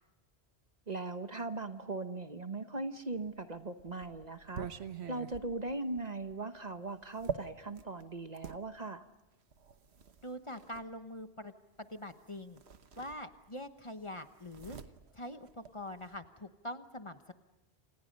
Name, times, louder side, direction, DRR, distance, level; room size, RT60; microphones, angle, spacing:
voice 1, 0.9-4.7 5.1-9.0, right 3 dB, 40° right, 9 dB, 1.2 m, -39 dB
sound 1, 3.3-8.6 9.5-10.9 12.1-12.2 12.5-13.7 13.9-16.2, right 6 dB, 80° right, 1.4 m, -45 dB
voice 2, 10.2-11.5 11.8-12.6 13.0-14.8 15.1-17.3, left 1 dB, 30° left, 8 dB, 1.1 m, -44 dB
29.0 x 27.5 x 5.4 m, 0.98 s
omnidirectional pair, 1.1 m